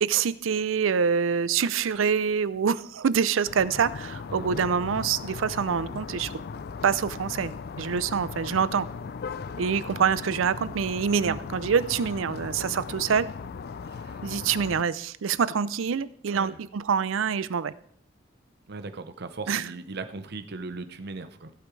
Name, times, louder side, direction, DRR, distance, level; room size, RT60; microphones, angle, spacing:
voice 1, 0.0-6.3 6.8-8.9 9.6-13.3 14.2-17.7 19.5-19.7, right 6 dB, 85° right, 17 dB, 0.5 m, -26 dB
sound 1, 3.4-14.8, left 5 dB, 55° left, 0.4 m, -38 dB
voice 2, 4.3-4.6 11.2-11.4 13.9-14.2 16.3-16.6 18.7-21.5, right 3 dB, 55° right, 9 dB, 0.8 m, -38 dB
15.0 x 8.5 x 3.2 m, 0.64 s
head